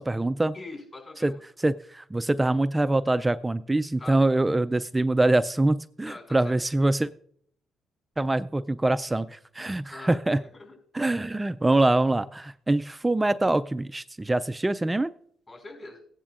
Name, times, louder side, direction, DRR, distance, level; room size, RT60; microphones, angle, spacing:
voice 1, 0.0-0.5 1.2-1.3 1.6-7.1 8.2-10.4 10.9-15.1, right 2 dB, 15° right, 13 dB, 0.3 m, -24 dB
voice 2, 0.5-1.4 4.0-4.2 6.0-6.6 9.9-10.2 10.5-10.8 15.5-16.0, left 2 dB, 30° left, 4 dB, 4.9 m, -42 dB
16.5 x 10.5 x 2.4 m, 0.62 s
cardioid pair, 90°, 0 cm